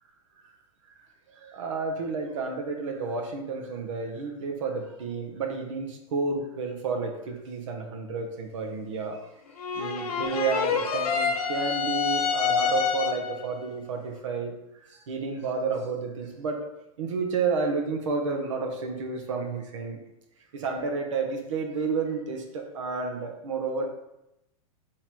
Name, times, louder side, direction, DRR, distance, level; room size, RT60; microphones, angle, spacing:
voice 1, 1.3-9.3 9.8-14.5 14.8-16.7 17.0-20.0 20.5-23.9, right 4 dB, 55° right, 3 dB, 0.9 m, -31 dB
sound 1, 9.6-13.4, left 6 dB, 85° left, 0.6 m, -27 dB
3.7 x 2.9 x 4.5 m, 0.87 s
supercardioid pair, 180°, 19 cm